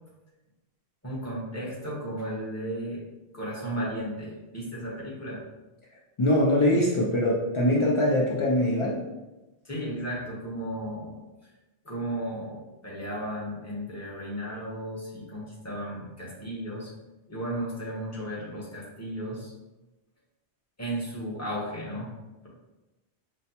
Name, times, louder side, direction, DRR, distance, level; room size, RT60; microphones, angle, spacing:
voice 1, 1.0-3.0 3.3-5.4 9.6-11.2 11.8-16.9 17.3-19.5 20.8-22.1, right 1 dB, 15° left, -5 dB, 0.9 m, -34 dB
voice 2, 6.2-9.0, left 1 dB, 55° left, -4 dB, 0.3 m, -23 dB
5.3 x 2.1 x 2.8 m, 1.1 s
omnidirectional pair, 1.1 m